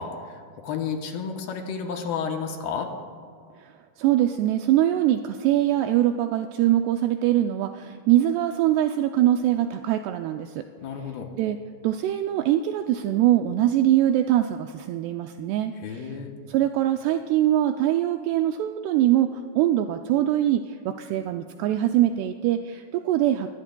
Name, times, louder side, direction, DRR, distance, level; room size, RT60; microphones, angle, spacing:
voice 1, 0.0-2.9 10.8-11.3 15.8-16.3, left 6 dB, 75° left, 3 dB, 2.4 m, -31 dB
voice 2, 4.0-10.6 11.4-11.6 11.8-16.1 16.5-19.3 19.6-23.5, right 12 dB, 90° right, 6 dB, 2.3 m, -23 dB
22.0 x 19.5 x 2.3 m, 2.2 s
omnidirectional pair, 5.2 m